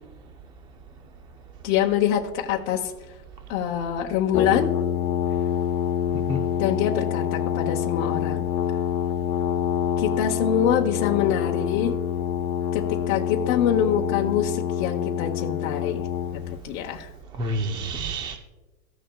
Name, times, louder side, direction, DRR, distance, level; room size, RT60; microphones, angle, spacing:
voice 1, 1.6-2.9 3.5-4.7 6.6-8.5 10.0-11.9 12.7-16.0 16.6-17.1, left 9 dB, 40° left, 1.0 m, -25 dB
Brass instrument, 4.3-16.6, left 9 dB, 75° left, 1.0 m, -26 dB
voice 2, 6.1-6.5 17.4-18.4, right 1 dB, 10° right, 0.5 m, -29 dB
16.0 x 6.4 x 2.3 m
supercardioid pair, 140°, 45 cm